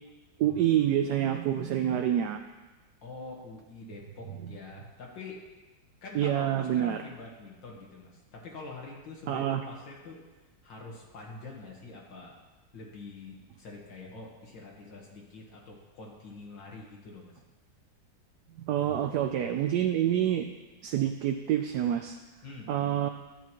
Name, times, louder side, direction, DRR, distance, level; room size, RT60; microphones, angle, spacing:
voice 1, 0.4-2.4 6.1-7.0 9.3-9.6 18.6-20.5 20.8-22.2 22.7-23.1, right 11 dB, 75° right, 5 dB, 1.0 m, -27 dB
voice 2, 3.0-5.4 6.0-10.2 10.6-12.4 12.7-17.4 22.4-22.7, left 3 dB, 75° left, -2 dB, 2.1 m, -45 dB
12.5 x 8.4 x 3.0 m, 1.2 s
omnidirectional pair, 2.1 m